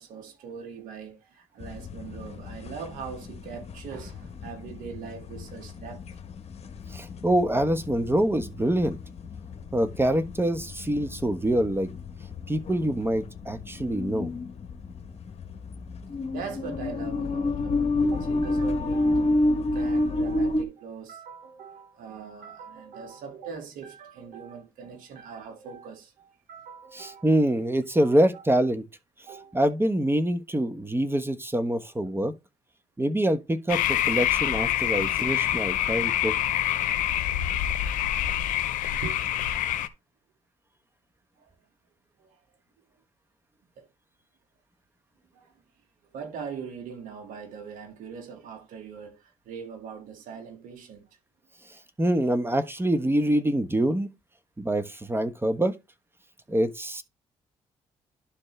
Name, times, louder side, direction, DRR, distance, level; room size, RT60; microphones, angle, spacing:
voice 1, 0.0-6.0 16.3-27.6 28.0-28.4 29.3-29.6 34.8-34.9 38.4-38.5 39.0-39.2 41.4-41.5 42.2-42.4 43.8-43.9 45.3-45.5 46.1-51.1, right 6 dB, 75° right, 2.1 m, -41 dB
sound 1, 1.6-20.6, left 2 dB, 50° left, 1.1 m, -29 dB
voice 2, 6.9-9.0 9.7-11.9 12.5-14.3 26.9-28.8 29.5-32.3 33.0-36.3 52.0-54.1 54.6-55.7 56.5-57.0, right 1 dB, 15° right, 1.2 m, -25 dB
sound 2, 33.7-39.9, left 12 dB, 75° left, 0.7 m, -26 dB
11.5 x 4.3 x 3.3 m
hypercardioid pair, 55°, 14 cm